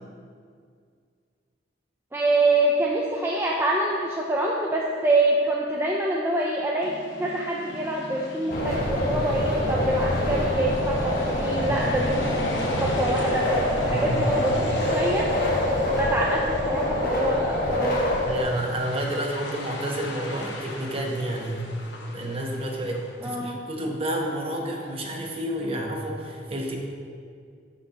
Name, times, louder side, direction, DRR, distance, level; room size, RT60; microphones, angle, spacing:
voice 1, 2.1-6.9 7.2-15.3 16.0-18.2 23.2-23.6, right 1 dB, 15° right, -3 dB, 0.5 m, -25 dB
sound 1, 6.8-23.3, left 1 dB, 75° left, 1.1 m, -38 dB
sound 2, 8.5-18.4, left 1 dB, 50° left, 1.3 m, -25 dB
voice 2, 13.9-14.4 18.2-21.7 22.1-26.8, right 1 dB, 30° right, 1 dB, 0.9 m, -30 dB
11.5 x 5.6 x 2.9 m, 2.2 s
head